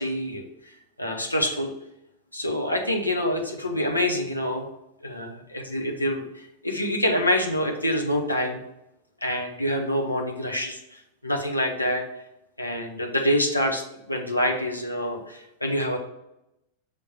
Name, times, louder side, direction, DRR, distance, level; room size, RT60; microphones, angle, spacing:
voice 1, 0.0-1.7 2.3-4.7 5.0-8.6 9.2-12.0 12.6-16.0, left 1 dB, 85° left, 2 dB, 0.9 m, -26 dB
6.3 x 3.5 x 5.6 m, 0.86 s
figure-of-eight pair, 90°, 0 cm